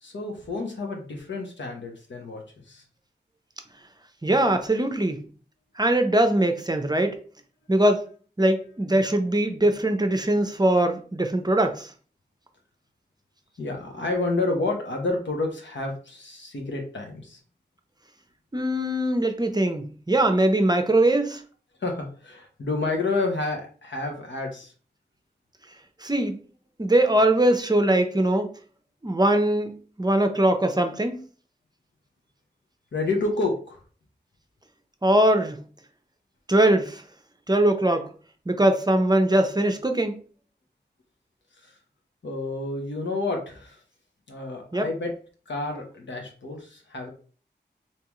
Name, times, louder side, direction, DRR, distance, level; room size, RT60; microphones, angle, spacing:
voice 1, 0.0-2.8 13.6-17.4 21.8-24.7 32.9-33.8 41.6-41.7 42.2-43.8 44.3-45.1 45.5-47.1, left 3 dB, 85° left, 1 dB, 1.0 m, -29 dB
voice 2, 4.2-5.2 5.8-7.2 7.7-8.1 8.4-11.9 18.5-21.4 26.0-26.4 26.8-28.5 29.0-31.2 35.0-35.6 36.5-37.0 37.5-38.1 38.5-40.2 44.7-44.9, right 1 dB, 20° right, 6 dB, 0.6 m, -21 dB
3.5 x 2.8 x 3.0 m, 0.40 s
wide cardioid pair, 60°, 19 cm